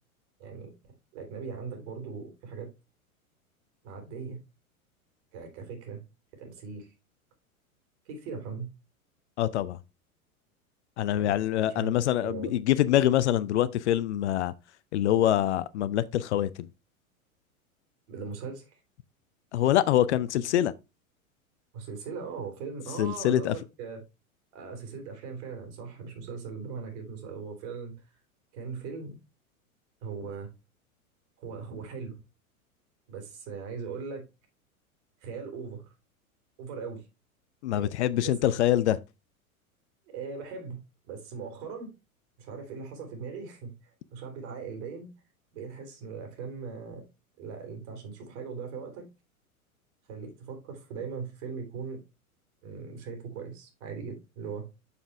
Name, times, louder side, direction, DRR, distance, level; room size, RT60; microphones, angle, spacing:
voice 1, 0.4-0.7 1.1-2.7 3.8-4.4 5.3-6.0 6.3-6.9 8.1-8.7 11.1-11.4 11.7-11.9 12.2-12.5 18.1-18.8 21.7-24.0 24.5-27.9 28.5-29.1 30.0-30.5 31.4-32.2 33.1-34.3 35.2-35.9 36.6-37.1 37.7-38.5 40.1-40.8 41.1-41.9 42.4-45.1 45.5-47.0 47.4-49.1 50.1-52.0 52.6-54.7, right 5 dB, 50° right, 3.7 m, -39 dB
voice 2, 9.4-9.8 11.0-14.5 14.9-16.5 19.5-20.7 23.0-23.5 37.6-39.0, left 12 dB, 50° left, 0.6 m, -25 dB
7.1 x 6.8 x 3.3 m
figure-of-eight pair, 90°, 43 cm